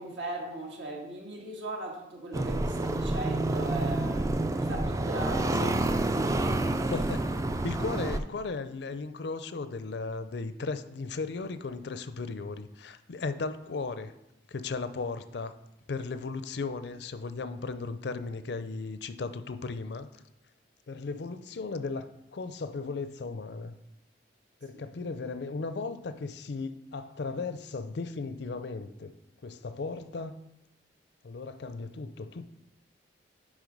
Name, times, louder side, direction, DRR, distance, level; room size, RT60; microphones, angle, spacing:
voice 1, 0.0-5.7 6.1-7.1, right 2 dB, 80° right, 0 dB, 1.7 m, -38 dB
sound 1, 2.3-8.2, right 2 dB, 15° right, 0.3 m, -28 dB
voice 2, 6.9-7.3 7.6-14.1 14.5-15.5 15.9-20.1 20.9-22.1 22.3-23.7 24.6-29.1 29.4-30.3 31.2-32.4, left 4 dB, 65° left, 11 dB, 0.5 m, -36 dB
9.9 x 3.7 x 5.3 m, 0.94 s
head